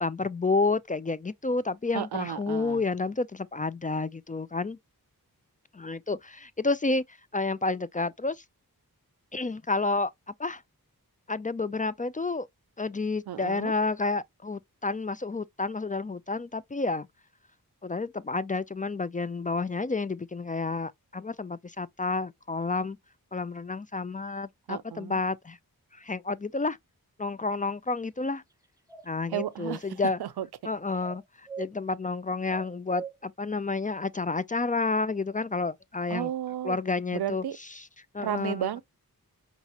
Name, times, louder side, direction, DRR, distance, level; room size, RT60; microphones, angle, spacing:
voice 1, 0.0-4.8 5.7-7.0 7.3-8.4 9.3-10.1 10.4-10.6 11.3-12.5 12.8-17.1 17.8-23.0 23.3-25.6 25.9-26.8 27.2-28.4 29.0-30.2 30.6-36.3 36.6-37.4 37.8-37.9 38.1-38.7, left 3 dB, 25° left, 0.4 m, -30 dB
voice 2, 1.9-2.8 13.3-13.7 24.7-25.2 29.3-30.5 36.1-36.8 37.1-37.6 38.2-38.8, right 11 dB, 85° right, 0.5 m, -33 dB
sound 1, 28.9-29.5 31.0-31.7 32.5-33.2, right 6 dB, 10° right, 0.7 m, -40 dB
5.3 x 2.4 x 2.8 m
cardioid pair, 50°, 37 cm